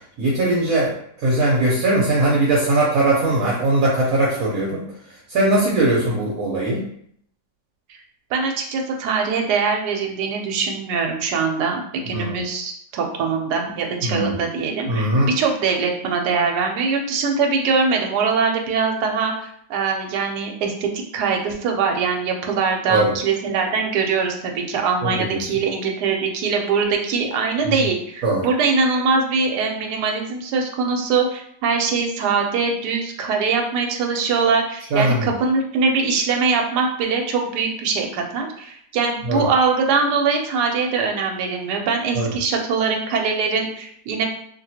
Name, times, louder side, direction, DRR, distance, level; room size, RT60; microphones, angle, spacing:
voice 1, 0.2-0.9 1.2-4.8 5.3-6.8 12.1-12.3 14.0-14.3 14.9-15.3 22.9-23.1 25.0-25.4 28.2-28.5 34.9-35.3 39.3-39.5 42.1-42.3, right 2 dB, 65° right, -4 dB, 1.0 m, -20 dB
voice 2, 8.3-19.3 19.7-44.3, right 5 dB, 80° right, 2 dB, 1.2 m, -22 dB
2.9 x 2.7 x 2.7 m, 0.68 s
omnidirectional pair, 1.8 m